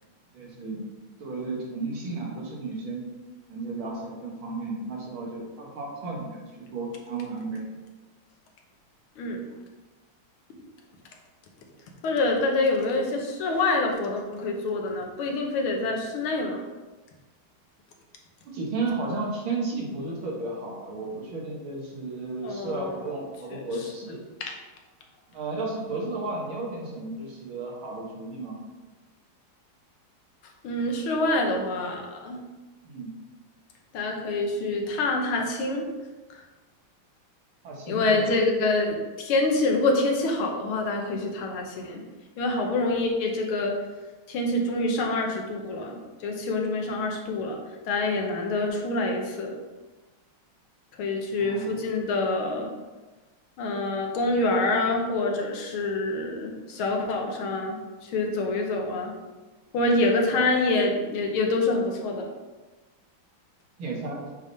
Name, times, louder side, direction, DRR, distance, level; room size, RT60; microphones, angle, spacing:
voice 1, 0.3-0.8 1.2-3.0 3.5-7.6 18.4-24.3 25.3-28.6 32.8-33.2 37.6-38.3 51.3-51.8 60.3-60.5 63.8-64.3, right 3 dB, 70° right, -2 dB, 2.2 m, -33 dB
voice 2, 9.2-9.5 12.0-16.6 22.4-23.1 23.5-23.7 24.4-24.5 30.6-32.4 33.9-35.9 36.3-36.4 37.9-42.0 42.4-43.7 44.3-47.6 47.9-49.6 51.0-52.7 53.6-59.1 59.7-62.3, left 2 dB, 85° left, 1 dB, 1.8 m, -26 dB
8.8 x 3.6 x 4.0 m, 1.2 s
omnidirectional pair, 2.3 m